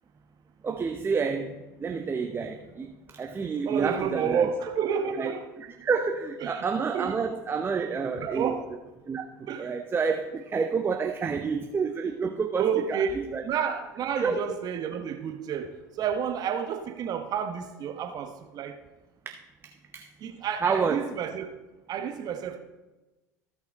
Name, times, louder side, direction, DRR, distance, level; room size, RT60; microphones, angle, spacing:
voice 1, 0.6-4.5 5.2-8.5 9.1-13.4 14.2-14.5 19.6-20.1 20.6-21.1, right 5 dB, 25° right, 5 dB, 0.7 m, -29 dB
voice 2, 3.7-5.5 6.4-7.2 8.2-8.6 9.5-9.7 11.3-11.4 12.6-13.1 13.4-18.8 20.2-21.5 21.9-22.6, right 7 dB, 45° right, 6 dB, 1.0 m, -30 dB
16.0 x 5.6 x 3.6 m, 1.1 s
hypercardioid pair, 75°, 9 cm